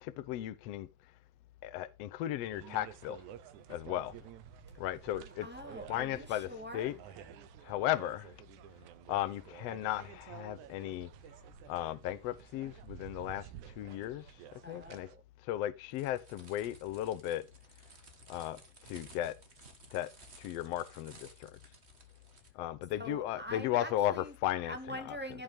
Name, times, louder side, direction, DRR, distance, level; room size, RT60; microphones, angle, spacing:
voice 1, 0.0-0.9 1.6-3.2 3.7-4.2 4.8-5.5 5.9-6.5 6.7-6.9 7.6-8.3 9.1-11.1 11.7-14.3 14.7-15.1 15.4-17.5 18.3-19.4 19.9-20.1 20.4-21.6 22.5-24.8 25.1-25.2, left 13 dB, 70° left, 1.7 m, -35 dB
sound 1, 2.5-15.2, right 12 dB, 75° right, 2.3 m, -52 dB
voice 2, 5.4-7.0 14.6-15.2 22.9-24.3 24.7-25.4, equal, 5° right, 1.6 m, -44 dB
sound 2, 15.9-22.5, right 3 dB, 25° right, 2.0 m, -57 dB
15.5 x 6.2 x 5.2 m
omnidirectional pair, 3.5 m